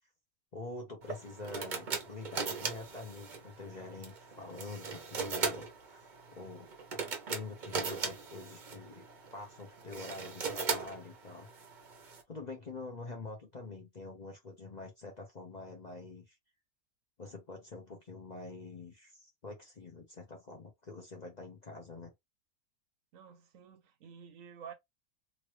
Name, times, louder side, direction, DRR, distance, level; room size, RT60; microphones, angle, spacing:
voice 1, 0.5-6.7 7.3-9.1 9.3-11.5 12.0-16.4 17.2-22.1, left 3 dB, 40° left, 0.7 m, -46 dB
sound 1, 1.0-12.2, right 5 dB, 45° right, 0.7 m, -39 dB
voice 2, 23.1-24.7, right 7 dB, 70° right, 1.0 m, -50 dB
3.0 x 2.6 x 3.0 m
omnidirectional pair, 1.5 m